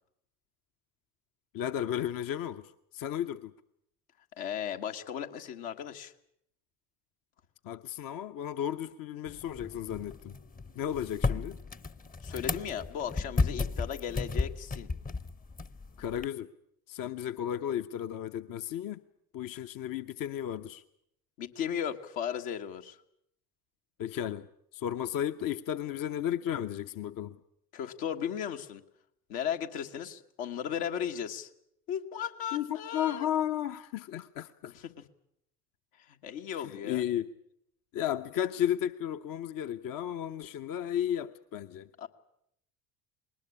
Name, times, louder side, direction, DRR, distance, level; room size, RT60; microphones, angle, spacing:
voice 1, 1.5-3.5 7.6-10.4 10.8-11.6 16.0-16.5 16.9-19.0 19.3-20.8 24.0-24.5 24.7-27.4 32.5-34.7 36.5-37.3 37.9-41.9, left 10 dB, 45° left, 10 dB, 0.9 m, -34 dB
voice 2, 4.4-6.1 12.2-14.9 21.4-23.0 27.7-28.8 29.3-31.5 31.9-33.3 36.0-37.0 42.0-42.1, left 9 dB, 65° left, 5 dB, 1.8 m, -36 dB
sound 1, 9.3-16.3, left 3 dB, 20° left, 0.9 m, -34 dB
20.5 x 19.5 x 9.9 m, 0.74 s
figure-of-eight pair, 60°, 48 cm